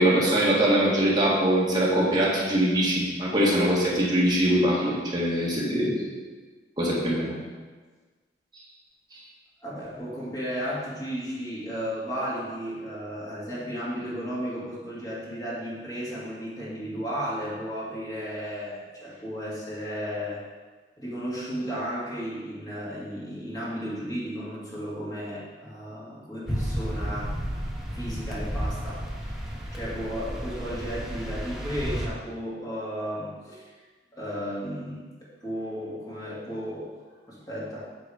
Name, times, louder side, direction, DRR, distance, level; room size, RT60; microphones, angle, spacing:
voice 1, 0.0-6.1 6.8-7.3 9.1-9.2, right 1 dB, 25° right, -5 dB, 1.7 m, -23 dB
voice 2, 9.6-20.4 21.0-27.3 27.9-33.7 34.1-36.9 37.3-37.8, equal, 20° left, -7 dB, 2.1 m, -34 dB
sound 1, 26.5-32.1, equal, 5° right, 0.9 m, -32 dB
8.3 x 4.0 x 5.0 m, 1.4 s
head